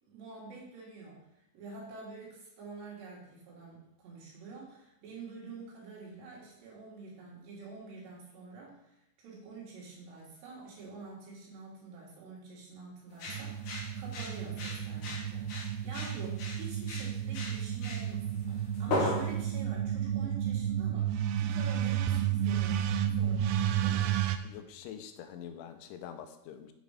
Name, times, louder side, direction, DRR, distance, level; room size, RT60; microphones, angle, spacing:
voice 1, 0.0-24.2, right 4 dB, 65° right, -4 dB, 4.0 m, -48 dB
sound 1, 13.1-19.5, left 2 dB, 60° left, 2.5 m, -36 dB
sound 2, 13.3-24.4, right 10 dB, 85° right, 2.8 m, -32 dB
voice 2, 24.4-26.7, left 9 dB, 85° left, 8 dB, 3.0 m, -45 dB
8.1 x 5.2 x 5.0 m, 0.85 s
omnidirectional pair, 5.4 m